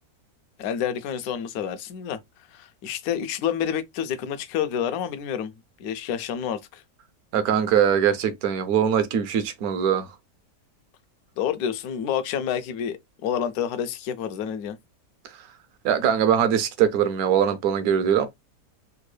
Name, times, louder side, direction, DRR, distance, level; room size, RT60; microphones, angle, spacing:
voice 1, 0.6-2.2 2.5-5.5 5.8-6.8 11.4-14.8, left 8 dB, 75° left, 1.1 m, -28 dB
voice 2, 7.3-10.1 15.8-18.3, right 8 dB, 70° right, 1.1 m, -22 dB
3.6 x 2.2 x 3.1 m
omnidirectional pair, 1.7 m